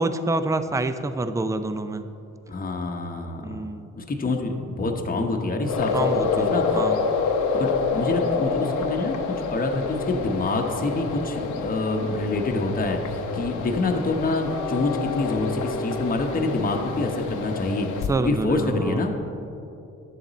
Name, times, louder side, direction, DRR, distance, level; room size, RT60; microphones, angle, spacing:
voice 1, 0.0-2.1 3.4-3.9 5.9-7.0 18.1-19.0, right 2 dB, 10° right, 11 dB, 0.4 m, -27 dB
voice 2, 2.5-3.6 4.0-5.9 6.4-6.8 7.6-17.9 18.2-19.2, left 2 dB, 30° left, 3 dB, 1.0 m, -26 dB
sound 1, 5.6-18.1, left 5 dB, 80° left, 0.8 m, -28 dB
10.5 x 7.2 x 4.0 m, 2.8 s
cardioid pair, 90°, 30 cm